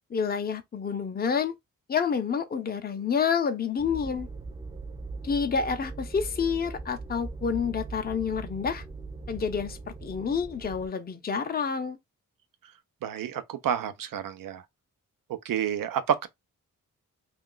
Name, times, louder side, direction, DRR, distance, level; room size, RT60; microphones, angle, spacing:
voice 1, 0.1-1.5 1.9-4.3 5.2-8.8 9.3-12.0, left 6 dB, 30° left, 0.6 m, -28 dB
sound 1, 3.8-10.9, right 3 dB, 15° right, 0.4 m, -40 dB
voice 2, 13.0-14.6 15.4-16.3, right 9 dB, 80° right, 0.6 m, -29 dB
2.4 x 2.3 x 3.7 m
cardioid pair, 70°, 33 cm